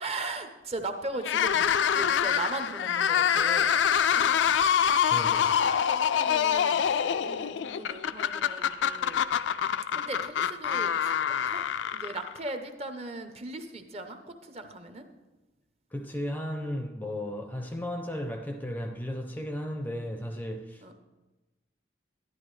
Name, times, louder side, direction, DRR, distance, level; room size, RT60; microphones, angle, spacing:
voice 1, 0.0-3.7 4.1-4.3 5.2-9.2 9.9-11.1 11.5-11.6 11.9-15.1 20.8-20.9, right 2 dB, 35° right, 0.6 m, -38 dB
sound 1, 1.2-12.5, left 8 dB, 75° left, 0.3 m, -26 dB
voice 2, 5.1-5.7 15.9-20.8, left 1 dB, 10° left, 0.4 m, -35 dB
11.0 x 10.5 x 3.2 m
head